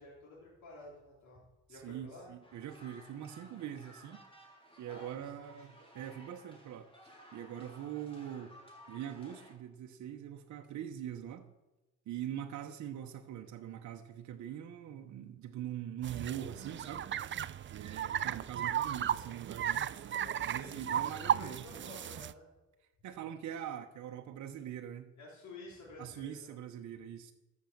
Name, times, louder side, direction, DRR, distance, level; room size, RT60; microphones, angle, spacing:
voice 1, 0.0-1.4 1.7-2.3 4.9-5.7 20.2-22.5 25.2-26.5, left 2 dB, 70° left, -4 dB, 3.5 m, -51 dB
voice 2, 1.7-4.2 4.8-8.5 8.9-11.5 12.1-17.1 17.7-21.7 23.0-25.1 26.0-27.3, right 10 dB, 70° right, 3 dB, 0.9 m, -43 dB
sound 1, 2.4-9.5, equal, 20° left, 3.5 m, -57 dB
sound 2, 16.0-22.3, right 9 dB, 40° right, 0.5 m, -35 dB
13.5 x 6.4 x 7.2 m, 1.1 s
cardioid pair, 90°, 30 cm